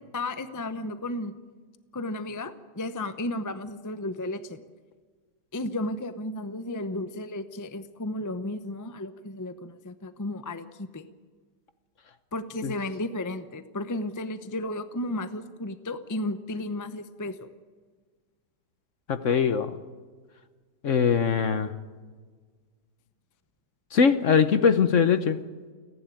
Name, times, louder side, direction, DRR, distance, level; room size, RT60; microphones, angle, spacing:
voice 1, 0.1-1.3 1.9-4.6 5.5-11.0 12.3-17.5, left 1 dB, 20° left, 11 dB, 0.6 m, -33 dB
voice 2, 19.1-19.7 20.8-21.7 23.9-25.4, left 6 dB, 55° left, 11 dB, 1.1 m, -21 dB
29.5 x 11.0 x 9.2 m, 1.5 s
omnidirectional pair, 1.8 m